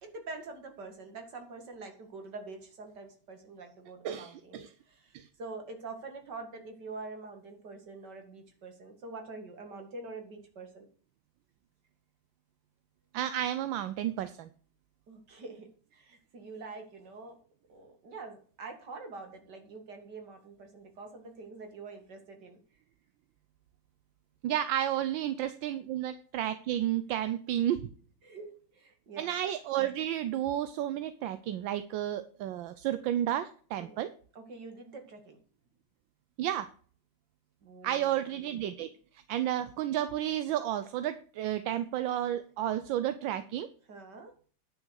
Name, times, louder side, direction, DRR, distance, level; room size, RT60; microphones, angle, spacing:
voice 1, 0.0-10.9 15.1-17.4 17.7-22.6 28.2-29.4 33.8-34.0 34.3-35.4 37.6-38.3 43.9-44.3, right 3 dB, 50° right, 5 dB, 2.6 m, -45 dB
voice 2, 4.0-4.7 5.1-5.3 13.1-14.5 24.4-27.9 29.2-34.1 36.4-36.7 37.8-43.7, right 11 dB, 70° right, 12 dB, 1.3 m, -32 dB
10.5 x 6.1 x 6.3 m, 0.43 s
omnidirectional pair, 2.3 m